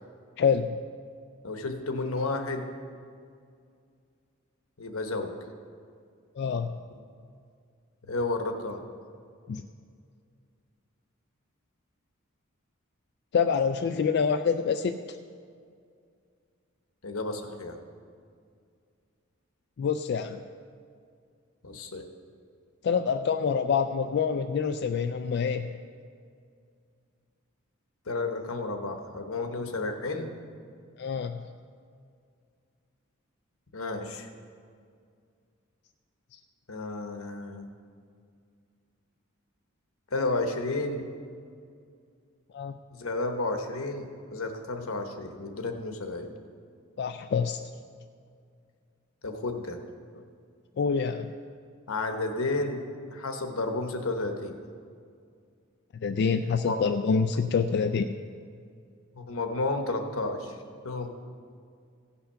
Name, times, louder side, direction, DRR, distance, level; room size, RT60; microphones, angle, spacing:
voice 1, 0.4-0.8 6.4-6.8 9.5-9.6 13.3-15.2 19.8-20.4 22.8-25.7 31.0-31.4 36.3-36.4 42.5-42.8 47.0-47.6 50.8-51.3 56.0-58.2, left 6 dB, 55° left, 7 dB, 0.3 m, -26 dB
voice 2, 1.4-2.6 4.8-5.3 6.9-7.0 8.0-8.8 17.0-17.8 21.6-22.1 28.1-30.3 33.7-34.3 36.7-37.7 40.1-41.0 42.9-46.3 49.2-49.8 51.9-52.8 53.1-54.5 56.6-56.8 59.2-60.5 60.8-61.1, left 2 dB, 85° left, 5 dB, 1.1 m, -32 dB
16.0 x 5.7 x 5.6 m, 2.3 s
head